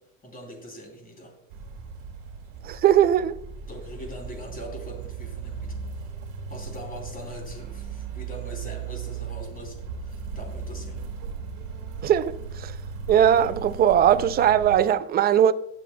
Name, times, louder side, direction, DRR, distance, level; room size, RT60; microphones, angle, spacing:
voice 1, 0.2-1.3 3.7-6.1 6.5-11.0, equal, 20° left, 2.9 m, -42 dB
sound 1, 1.5-14.8, right 5 dB, 85° right, 1.8 m, -37 dB
voice 2, 2.7-3.3 12.0-12.3 12.6-12.7 13.1-15.5, right 10 dB, 25° right, 0.4 m, -19 dB
17.5 x 7.2 x 2.2 m
supercardioid pair, 100°, 42 cm